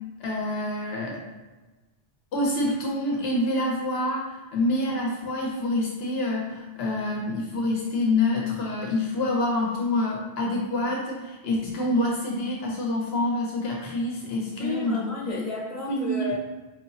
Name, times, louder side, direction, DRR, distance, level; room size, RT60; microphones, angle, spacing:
voice 1, 0.2-1.2 2.3-15.5 15.9-16.3, left 1 dB, 80° left, -2 dB, 0.9 m, -27 dB
voice 2, 14.6-16.4, left 3 dB, 35° left, -6 dB, 1.2 m, -32 dB
4.6 x 2.8 x 2.6 m, 1.2 s
omnidirectional pair, 1.0 m